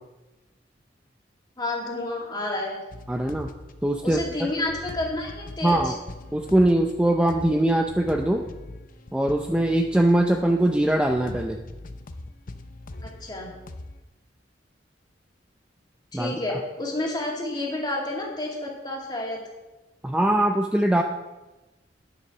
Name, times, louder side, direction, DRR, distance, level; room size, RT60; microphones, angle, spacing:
voice 1, 1.6-2.8 4.0-5.9 13.0-13.5 16.1-19.4, left 2 dB, 25° left, -2 dB, 2.3 m, -30 dB
sound 1, 2.9-14.0, left 2 dB, 50° left, 0.7 m, -42 dB
voice 2, 3.1-3.5 3.8-4.5 5.6-6.0 6.3-8.4 9.1-11.6 16.1-16.6 20.0-21.0, right 1 dB, 5° right, 3 dB, 0.5 m, -22 dB
9.6 x 7.9 x 6.0 m, 1.1 s
head